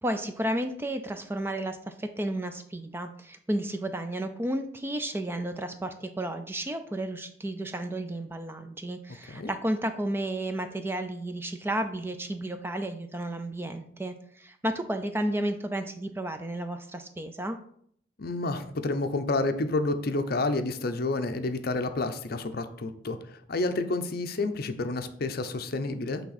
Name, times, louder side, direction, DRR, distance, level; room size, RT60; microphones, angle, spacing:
voice 1, 0.0-17.6, right 1 dB, 10° right, 7 dB, 0.4 m, -32 dB
voice 2, 18.2-26.2, left 2 dB, 50° left, 8 dB, 0.6 m, -29 dB
8.5 x 3.5 x 4.1 m, 0.64 s
head